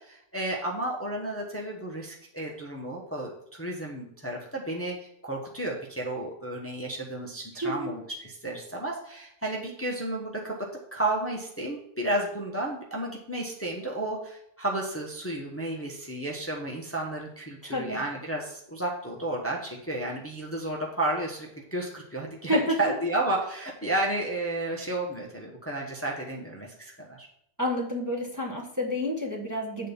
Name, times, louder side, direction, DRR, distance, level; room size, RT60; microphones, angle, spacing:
voice 1, 0.1-4.9 5.2-10.5 10.9-27.3, right 1 dB, 10° left, -2 dB, 1.0 m, -32 dB
voice 2, 7.6-7.9 17.6-18.0 22.5-22.8 27.6-29.9, equal, 15° right, -2 dB, 1.1 m, -29 dB
7.6 x 4.1 x 6.8 m, 0.75 s
omnidirectional pair, 1.3 m